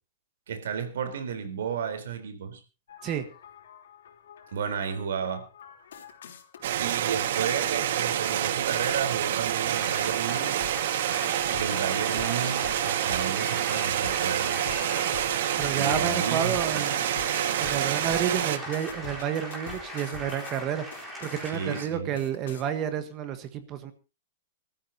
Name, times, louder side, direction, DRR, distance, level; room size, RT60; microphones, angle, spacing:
voice 1, 0.5-2.6 4.5-5.5 6.8-10.7 11.5-14.6 15.7-16.8 21.5-22.2, right 7 dB, 80° right, 4.0 m, -32 dB
sound 1, 2.9-20.6 20.9-21.7 22.2-22.6, left 8 dB, 90° left, 3.5 m, -46 dB
sound 2, 6.6-18.6, right 11 dB, 60° right, 1.2 m, -28 dB
sound 3, 9.7-21.8, equal, 5° right, 4.1 m, -39 dB
voice 2, 15.6-17.1 17.6-20.8 21.2-23.9, right 9 dB, 25° right, 1.3 m, -30 dB
24.5 x 14.0 x 2.9 m
supercardioid pair, 170°, 0 cm